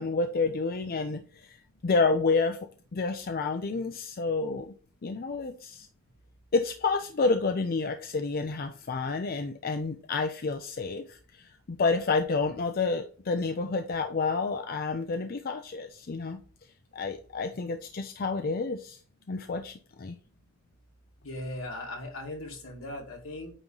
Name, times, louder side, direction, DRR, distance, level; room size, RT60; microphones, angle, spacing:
voice 1, 0.0-1.6 1.8-2.6 2.9-4.7 5.0-5.9 6.5-16.4 16.9-19.0 19.3-19.7 20.0-20.1, left 4 dB, 45° left, 6 dB, 0.5 m, -29 dB
voice 2, 21.2-23.5, left 1 dB, 80° left, 0 dB, 2.3 m, -38 dB
8.9 x 3.1 x 3.8 m, 0.42 s
head